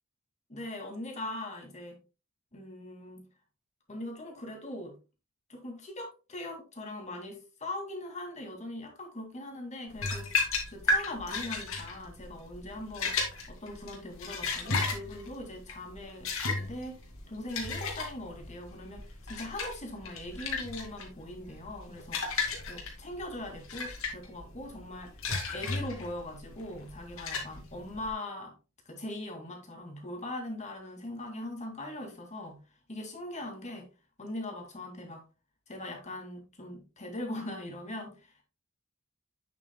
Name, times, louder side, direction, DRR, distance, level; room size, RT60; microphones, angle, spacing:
voice 1, 0.5-2.0 2.5-3.2 3.9-4.9 5.5-10.3 10.7-13.1 13.5-16.3 16.5-17.0 17.3-22.2 22.7-25.1 25.5-28.5 28.9-32.6 32.9-33.9 34.2-35.2 35.7-38.4, left 1 dB, 35° left, 2 dB, 2.2 m, -41 dB
sound 1, 9.9-28.1, left 3 dB, 80° left, 2.3 m, -34 dB
8.3 x 7.4 x 2.2 m, 0.31 s
head